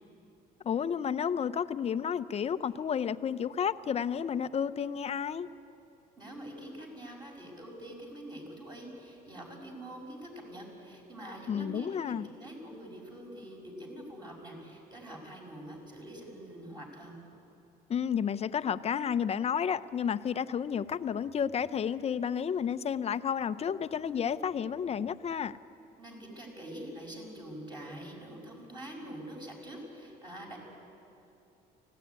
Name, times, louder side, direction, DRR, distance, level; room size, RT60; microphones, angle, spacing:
voice 1, 0.6-5.5 11.5-12.3 17.9-25.6, left 7 dB, 40° left, 13 dB, 0.7 m, -31 dB
voice 2, 6.2-17.2 26.0-30.6, right 1 dB, 25° right, 0 dB, 6.4 m, -45 dB
24.5 x 17.0 x 9.6 m, 2.9 s
cardioid pair, 110°, 17 cm